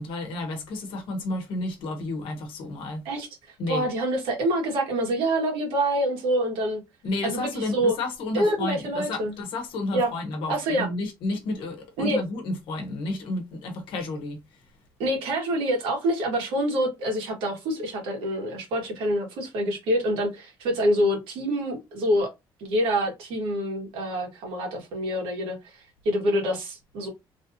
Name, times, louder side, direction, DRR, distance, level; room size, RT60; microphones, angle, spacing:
voice 1, 0.0-3.1 3.6-3.8 7.0-14.6, left 2 dB, 75° left, 0.9 m, -31 dB
voice 2, 3.0-6.8 7.2-7.9 8.3-9.3 9.9-10.1 10.5-10.9 12.0-12.2 15.0-22.3 22.6-27.1, equal, 85° right, 1.5 m, -26 dB
3.2 x 2.7 x 2.7 m
cardioid pair, 145°, 9 cm